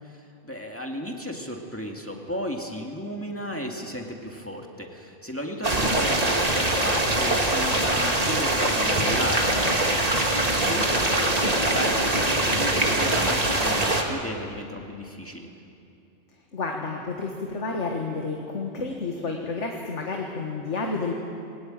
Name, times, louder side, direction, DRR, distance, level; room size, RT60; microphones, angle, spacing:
voice 1, 0.0-15.5, equal, 10° left, 1 dB, 2.1 m, -34 dB
sound 1, 5.6-14.0, right 1 dB, 30° right, 2.0 m, -23 dB
voice 2, 16.5-21.1, left 3 dB, 75° left, 1 dB, 2.0 m, -30 dB
21.5 x 18.0 x 9.0 m, 2.7 s
omnidirectional pair, 1.2 m